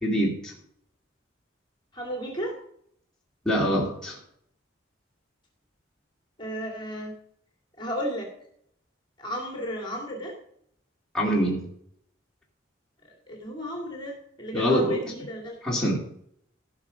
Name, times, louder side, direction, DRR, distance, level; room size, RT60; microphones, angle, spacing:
voice 1, 0.0-0.5 3.4-4.2 11.1-11.6 14.5-15.0 15.6-16.0, equal, 5° left, -4 dB, 2.5 m, -24 dB
voice 2, 1.9-2.6 6.4-7.2 7.8-8.3 9.2-10.4 13.3-15.6, equal, 25° left, 1 dB, 2.5 m, -34 dB
16.0 x 6.1 x 5.1 m, 0.67 s
head